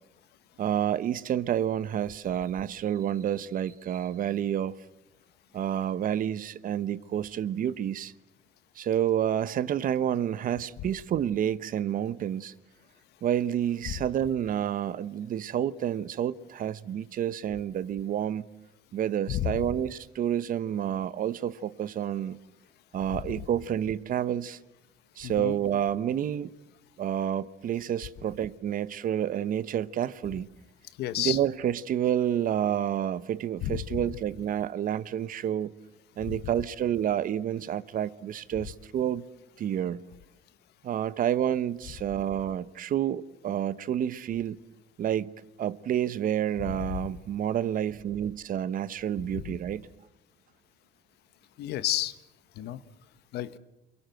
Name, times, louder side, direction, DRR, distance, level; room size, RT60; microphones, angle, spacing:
voice 1, 0.6-4.7 5.5-8.1 8.8-12.5 13.2-18.5 18.9-22.4 22.9-24.6 25.2-26.5 27.0-30.5 31.2-35.7 36.2-39.3 39.6-40.0 40.8-44.6 45.0-45.3 45.6-49.9, right 10 dB, 55° right, 1.0 m, -29 dB
voice 2, 19.3-19.6 25.2-25.6 31.0-31.4 33.6-34.1 36.3-36.4 49.4-49.6 51.6-52.1 52.6-52.8 53.3-53.6, left 13 dB, 75° left, 1.3 m, -31 dB
28.5 x 22.0 x 7.8 m
cardioid pair, 110°, 17 cm